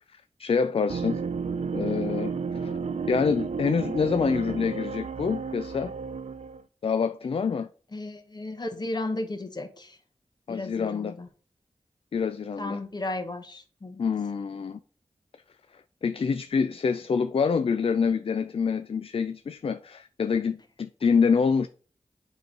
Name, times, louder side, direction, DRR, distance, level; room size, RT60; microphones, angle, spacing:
voice 1, 0.1-1.2 1.7-2.8 3.1-5.9 6.8-7.7 10.5-11.1 12.1-12.8 14.0-14.8 15.7-21.7, left 5 dB, 55° left, 0.4 m, -26 dB
sound 1, 0.9-6.6, right 5 dB, 75° right, 0.4 m, -32 dB
voice 2, 7.9-10.0 10.5-11.3 12.6-14.0, left 2 dB, 40° left, 1.1 m, -34 dB
7.7 x 3.1 x 5.3 m
wide cardioid pair, 60°, 12 cm